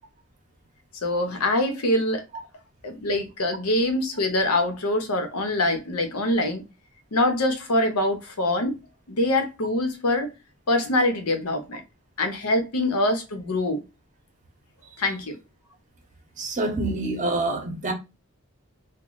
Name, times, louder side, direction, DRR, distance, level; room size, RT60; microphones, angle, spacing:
voice 1, 1.0-2.2 2.8-6.6 7.1-8.8 9.1-10.3 10.7-11.8 12.2-13.8 15.0-15.4, left 1 dB, 90° left, 0.8 m, -24 dB
voice 2, 16.4-17.9, right 2 dB, 35° right, 0.7 m, -26 dB
3.1 x 2.1 x 3.8 m
head